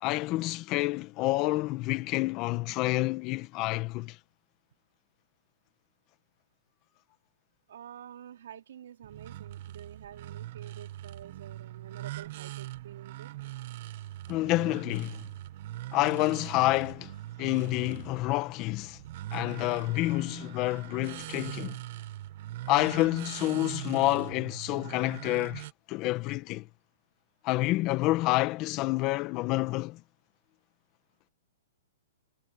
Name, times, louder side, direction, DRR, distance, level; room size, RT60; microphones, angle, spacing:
voice 1, 0.0-4.2 14.3-15.3 15.9-17.1 17.4-19.0 19.3-21.7 22.7-26.7 27.4-30.0, left 19 dB, 30° left, 1.4 m, -28 dB
voice 2, 7.7-13.3, right 9 dB, 70° right, 4.3 m, -48 dB
sound 1, 9.0-25.7, right 15 dB, 50° right, 1.3 m, -42 dB
hypercardioid pair, 155°, 0 cm